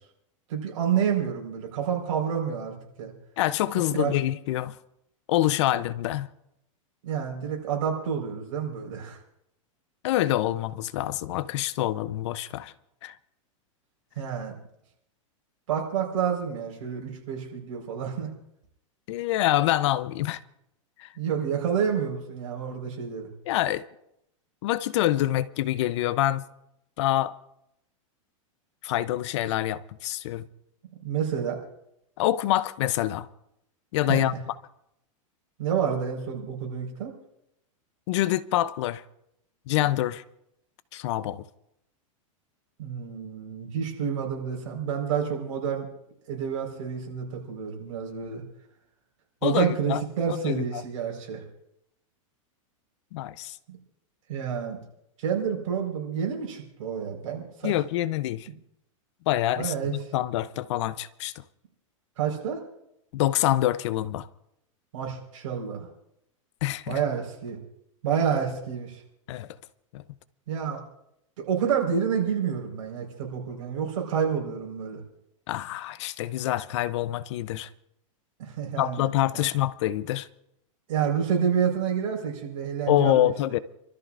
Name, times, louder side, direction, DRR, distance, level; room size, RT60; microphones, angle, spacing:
voice 1, 0.5-3.1 4.0-4.1 7.0-9.2 14.2-14.5 15.7-18.3 21.2-23.3 31.0-31.6 34.1-34.2 35.6-37.1 42.8-45.9 46.3-48.4 49.4-51.4 53.7-53.8 54.3-54.8 55.2-57.7 59.6-59.9 62.2-62.6 64.9-65.9 66.9-67.6 68.0-69.0 70.5-70.8 71.4-75.0 78.4-79.1 79.3-79.4 80.9-83.3, right 7 dB, 70° right, 4.5 m, -29 dB
voice 2, 3.4-4.8 5.3-6.3 10.0-12.7 13.0-13.2 19.1-20.4 21.0-21.1 23.5-23.8 24.6-26.4 27.0-27.3 28.8-30.5 32.2-33.3 33.9-34.5 38.1-39.0 39.7-40.2 40.9-41.4 49.4-50.0 50.3-50.8 53.1-53.6 57.6-58.5 59.3-61.3 63.1-64.3 66.6-67.0 69.3-69.5 69.9-70.0 75.5-77.7 78.8-80.3 82.9-83.6, left 14 dB, 60° left, 0.6 m, -26 dB
30.0 x 13.5 x 2.5 m
supercardioid pair, 150°, 17 cm